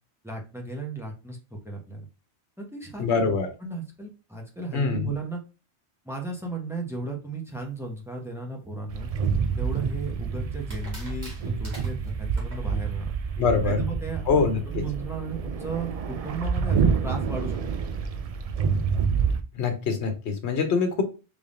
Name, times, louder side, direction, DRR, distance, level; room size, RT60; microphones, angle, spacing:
voice 1, 0.2-2.1 2.6-5.4 6.0-9.1 9.6-13.2 13.6-14.4 14.6-17.6, right 3 dB, 5° right, 0 dB, 0.8 m, -35 dB
voice 2, 3.0-3.5 4.7-5.1 13.4-13.8 14.3-14.8 19.5-21.0, left 5 dB, 80° left, 6 dB, 1.1 m, -24 dB
sound 1, 8.9-19.4, right 6 dB, 60° right, 0.4 m, -28 dB
sound 2, 9.2-10.0 10.7-12.7, right 1 dB, 40° right, 1.4 m, -45 dB
3.6 x 3.4 x 2.5 m, 0.32 s
omnidirectional pair, 1.1 m